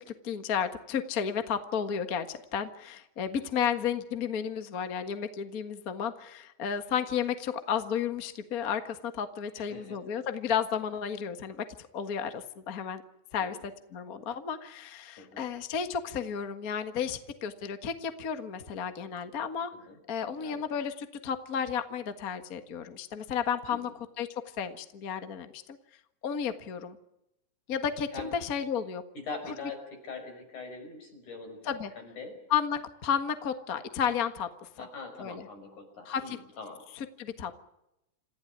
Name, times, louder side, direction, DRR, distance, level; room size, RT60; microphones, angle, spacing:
voice 1, 0.0-11.6 11.9-13.0 13.3-13.6 13.9-19.7 20.1-23.9 24.2-24.3 24.6-25.8 26.2-27.0 27.7-29.0 31.7-31.9 32.5-34.7 35.2-35.5 36.0-36.4 36.9-37.6, left 7 dB, 35° left, 9 dB, 1.6 m, -32 dB
voice 2, 9.5-10.0 13.4-13.6 15.2-15.4 19.7-20.0 20.3-20.6 23.7-23.9 28.1-28.3 29.2-32.4 34.8-36.8, left 4 dB, 80° left, 5 dB, 7.0 m, -43 dB
28.0 x 15.5 x 9.7 m, 0.86 s
omnidirectional pair, 3.4 m